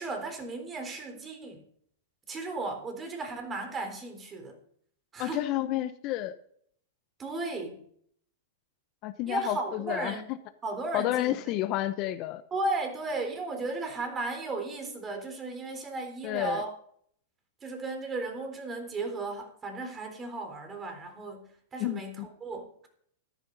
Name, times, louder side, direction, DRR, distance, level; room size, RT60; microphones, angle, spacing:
voice 1, 0.0-1.6 2.3-4.6 5.1-5.4 7.2-7.8 9.3-10.2 10.6-11.4 12.5-16.7 17.6-22.9, right 2 dB, 20° right, 4 dB, 3.8 m, -35 dB
voice 2, 5.2-6.3 9.0-10.2 10.9-12.4 16.2-16.6 21.8-22.0, left 14 dB, 45° left, 12 dB, 0.8 m, -30 dB
13.5 x 11.0 x 4.0 m, 0.64 s
hypercardioid pair, 110°, 0 cm